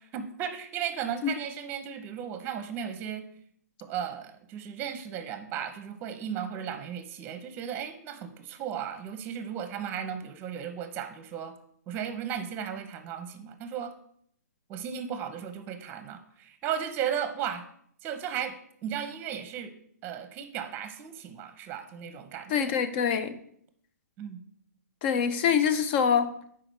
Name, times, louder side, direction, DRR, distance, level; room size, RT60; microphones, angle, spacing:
voice 1, 0.0-3.2 3.8-11.6 11.9-13.9 14.7-17.6 18.0-18.5 18.8-19.7 20.0-22.8 24.2-24.4, right 8 dB, 25° right, 9 dB, 0.8 m, -35 dB
voice 2, 22.5-23.4 25.0-26.3, left 7 dB, 35° left, 11 dB, 0.6 m, -25 dB
5.0 x 4.8 x 6.2 m, 0.67 s
hypercardioid pair, 135°, 9 cm